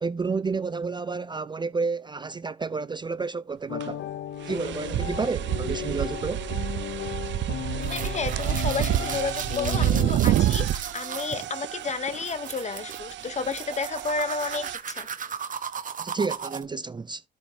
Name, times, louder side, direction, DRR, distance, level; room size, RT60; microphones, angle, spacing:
voice 1, 0.0-4.0 4.5-6.5 16.0-17.2, right 4 dB, 20° right, 0.5 m, -30 dB
sound 1, 3.7-10.1, left 11 dB, 70° left, 0.9 m, -35 dB
sound 2, 3.8-3.9 4.4-14.8, right 12 dB, 65° right, 0.6 m, -29 dB
sound 3, 7.8-16.6, right 7 dB, 40° right, 1.1 m, -37 dB
voice 2, 7.9-15.1, left 4 dB, 35° left, 1.0 m, -31 dB
12.5 x 5.1 x 2.9 m
cardioid pair, 90°, 20 cm